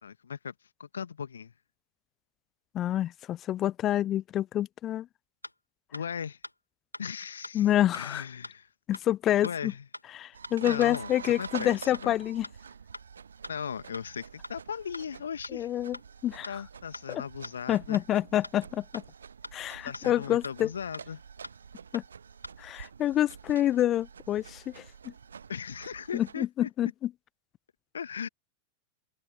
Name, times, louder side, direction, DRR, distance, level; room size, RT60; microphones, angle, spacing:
voice 1, 0.0-0.5 0.8-1.5 5.9-6.4 7.0-7.7 8.0-8.7 9.4-9.9 10.6-12.2 13.5-15.7 16.5-18.0 19.8-21.2 25.5-26.7 27.9-28.3, left 7 dB, 70° left, 2.1 m, -38 dB
voice 2, 2.7-5.1 7.5-8.2 8.9-9.7 10.1-12.5 15.5-16.0 16.2-16.5 17.1-17.2 17.7-19.0 19.5-20.7 21.9-22.0 22.6-24.8 26.1-27.1, left 12 dB, 30° left, 0.5 m, -27 dB
sound 1, 5.4-5.5 5.9-6.0 6.4-6.5 6.9-7.0 7.4-7.5 7.9-8.0 8.4-8.5 8.9-9.0 9.4-9.5 9.9-10.0 10.4-10.5 10.9-11.0 11.4-11.5 11.9-12.0 12.4-12.5 12.9-13.0 13.4-13.5 13.9-14.0 14.4-14.5 14.9-15.0 15.4-15.5 15.9-16.0 16.4-16.5 16.9-17.0 17.4-17.5 17.9-18.0 18.4-18.5 18.9-19.0 19.4-19.5 19.9-20.0 20.4-20.5 20.9-21.0 21.4-21.5 21.9-22.0 22.4-22.5, left 1 dB, 85° left, 2.1 m, -42 dB
sound 2, 10.3-26.4, right 6 dB, 70° right, 0.9 m, -47 dB
figure-of-eight pair, 90°, 0 cm